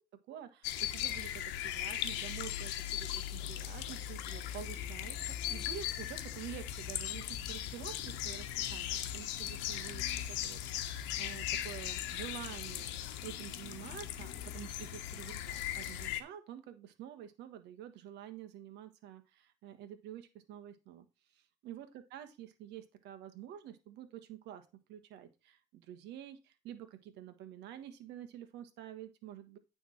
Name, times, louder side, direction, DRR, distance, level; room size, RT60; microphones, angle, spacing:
voice 1, 0.3-5.2 5.5-12.9 13.2-21.0 21.3-29.6, right 10 dB, 75° right, 10 dB, 1.4 m, -48 dB
sound 1, 0.6-16.2, left 11 dB, 85° left, 1.0 m, -38 dB
9.4 x 3.6 x 5.8 m, 0.28 s
cardioid pair, 105°, 18 cm